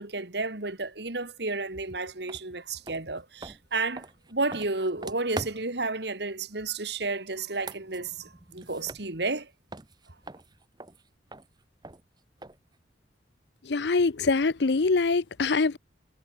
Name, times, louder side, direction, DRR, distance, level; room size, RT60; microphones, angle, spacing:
voice 1, 0.0-9.5, right 3 dB, 65° right, 2.4 m, -32 dB
sound 1, 2.3-2.4 2.8-5.9 7.4-9.4 9.7-12.8, right 2 dB, 20° right, 1.0 m, -43 dB
voice 2, 13.6-15.8, left 3 dB, 65° left, 0.7 m, -24 dB
head